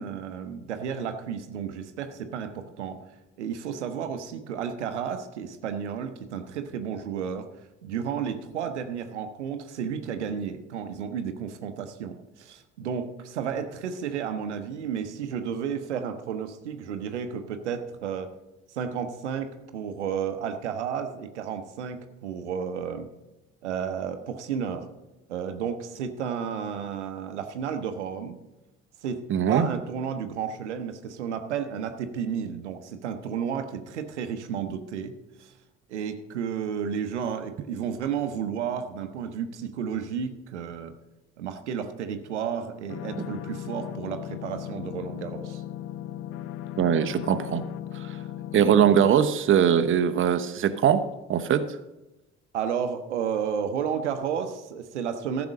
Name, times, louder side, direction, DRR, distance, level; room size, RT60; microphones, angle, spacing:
voice 1, 0.0-3.0 3.4-7.5 7.8-18.3 18.7-23.1 23.6-24.9 25.3-28.4 29.0-35.1 35.4-35.5 35.9-40.9 41.4-45.6 52.5-55.5, right 7 dB, 80° right, 9 dB, 0.9 m, -32 dB
voice 2, 29.3-29.7 46.8-47.7 47.9-48.1 48.5-51.8, right 8 dB, 35° right, 10 dB, 0.8 m, -22 dB
sound 1, 42.9-49.1, left 11 dB, 40° left, 0.6 m, -37 dB
14.0 x 6.0 x 6.4 m, 1.0 s
figure-of-eight pair, 50°, 34 cm